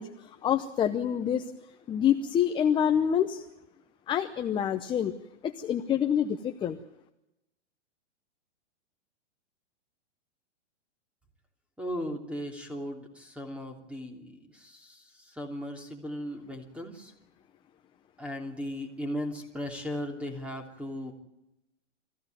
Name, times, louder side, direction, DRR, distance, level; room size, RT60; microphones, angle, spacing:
voice 1, 0.0-1.5 1.9-3.4 4.1-5.1 5.4-6.8, left 9 dB, 15° left, 7 dB, 0.7 m, -27 dB
voice 2, 11.8-15.0 15.3-17.1 18.2-21.1, equal, 5° right, 4 dB, 3.1 m, -37 dB
23.0 x 15.5 x 9.2 m, 0.91 s
hypercardioid pair, 145°, 36 cm